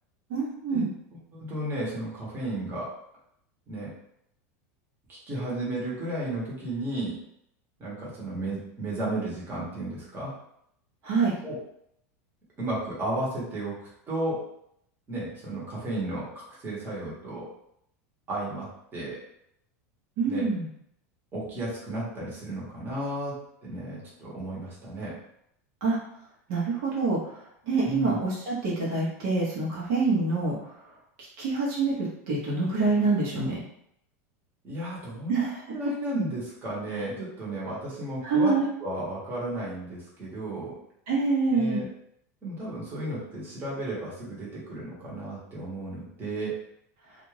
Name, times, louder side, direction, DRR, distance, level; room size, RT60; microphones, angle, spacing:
voice 1, 0.3-0.9 11.0-11.3 20.2-20.7 25.8-26.0 26.5-27.3 27.7-30.7 31.2-33.6 35.3-35.5 36.9-37.0 38.2-38.7 41.1-41.8, right 3 dB, 60° right, -6 dB, 1.0 m, -26 dB
voice 2, 1.3-2.9 3.7-3.9 5.1-7.2 7.8-10.3 11.4-11.6 12.6-14.4 15.1-17.4 18.3-18.7 18.9-19.2 20.3-20.4 21.3-23.3 23.6-25.1 27.8-28.2 34.6-38.5 38.8-40.7 41.5-41.9 42.4-46.5, right 1 dB, 25° right, -6 dB, 1.2 m, -33 dB
2.4 x 2.4 x 3.2 m, 0.74 s
supercardioid pair, 130°, 8 cm